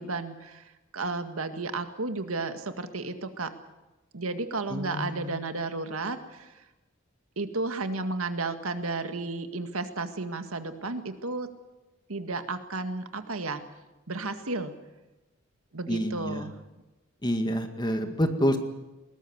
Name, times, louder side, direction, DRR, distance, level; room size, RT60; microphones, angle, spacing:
voice 1, 0.0-3.5 4.1-6.6 7.4-11.5 12.1-13.6 14.1-14.7 15.7-16.6, right 3 dB, 85° right, 8 dB, 1.9 m, -33 dB
voice 2, 4.7-5.4 15.9-16.4 17.2-18.6, equal, 20° left, 6 dB, 1.9 m, -28 dB
21.0 x 19.5 x 8.1 m, 1.1 s
head